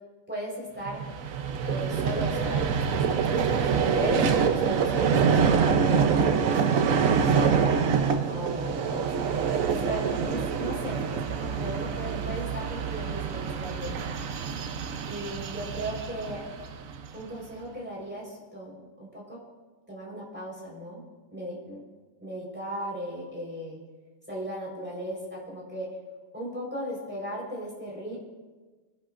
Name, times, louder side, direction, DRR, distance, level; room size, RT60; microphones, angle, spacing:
voice 1, 0.3-1.0 1.6-6.0 7.1-7.6 7.9-14.1 15.1-16.4 17.1-19.4 19.9-21.0 21.3-21.8 22.2-23.8 24.3-25.9 26.3-28.2, equal, 5° right, -4 dB, 4.1 m, -36 dB
Vehicle, 0.9-17.2, right 6 dB, 70° right, 1.2 m, -26 dB
26.0 x 11.0 x 2.5 m, 1.3 s
omnidirectional pair, 1.5 m